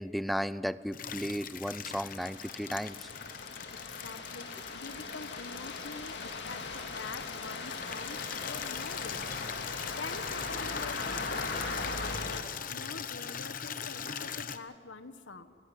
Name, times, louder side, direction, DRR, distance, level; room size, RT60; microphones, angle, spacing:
voice 1, 0.0-3.1, equal, ahead, 15 dB, 0.5 m, -34 dB
Water tap faucet / Liquid, 0.9-14.6, left 7 dB, 45° left, 0.9 m, -41 dB
sound 1, 1.5-12.4, left 3 dB, 65° left, 2.3 m, -39 dB
voice 2, 3.9-8.2 8.4-9.4 9.9-15.6, left 3 dB, 85° left, 11 dB, 1.3 m, -46 dB
18.5 x 16.5 x 9.9 m, 2.1 s
head